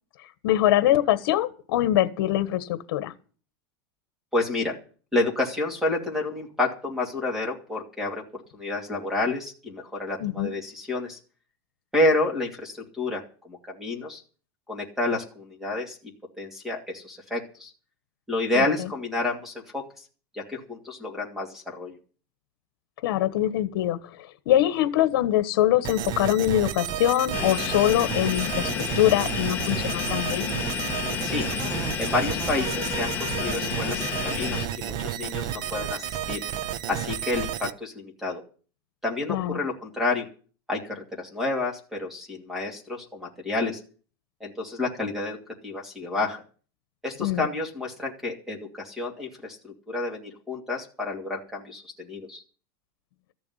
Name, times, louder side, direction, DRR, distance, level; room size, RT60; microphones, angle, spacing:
voice 1, 0.4-3.1 10.2-10.5 18.5-18.9 23.0-30.5 39.3-39.6 47.2-47.5, left 13 dB, 65° left, 1.4 m, -23 dB
voice 2, 4.3-4.8 5.1-11.2 11.9-14.2 14.7-16.0 16.4-17.7 18.3-20.0 20.3-22.0 31.2-31.5 32.0-36.4 36.9-38.4 39.0-40.3 40.7-43.8 44.4-45.4 45.6-46.4 47.0-52.4, left 2 dB, 5° right, 2.7 m, -29 dB
sound 1, 25.8-37.7, right 10 dB, 35° right, 0.7 m, -32 dB
sound 2, 27.3-34.7, left 8 dB, 15° left, 1.4 m, -31 dB
14.0 x 7.1 x 9.8 m
supercardioid pair, 170°, 12 cm